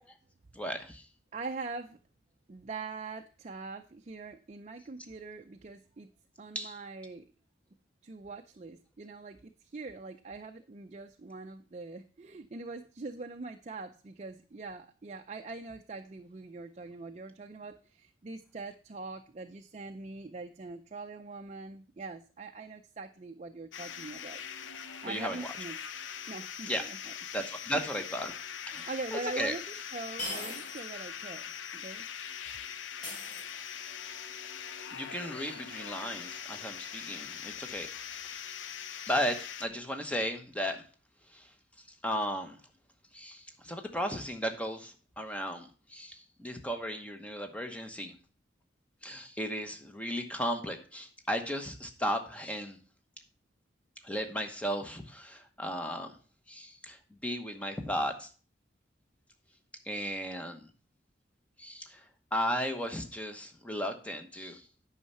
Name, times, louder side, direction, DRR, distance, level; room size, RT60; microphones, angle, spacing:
voice 1, 0.5-1.1 6.5-6.8 25.0-25.5 26.7-26.9 27.3-28.3 28.7-29.5 34.9-37.9 39.1-40.9 41.3-41.5 41.9-42.6 43.1-48.1 49.0-52.8 54.0-56.2 56.5-58.3 59.8-60.7 61.6-64.7, equal, 5° left, 5 dB, 1.0 m, -35 dB
voice 2, 1.3-2.0 2.5-6.1 6.4-7.2 8.0-24.4 25.0-25.8 26.3-27.0 28.7-31.4 31.7-32.0, right 3 dB, 35° right, 6 dB, 0.4 m, -43 dB
sound 1, 23.7-39.7, left 8 dB, 80° left, 0.7 m, -42 dB
sound 2, 28.8-28.9 30.2-30.9 31.2-31.3 33.0-33.9, left 1 dB, 45° left, 3.5 m, -40 dB
9.4 x 5.6 x 5.5 m, 0.39 s
head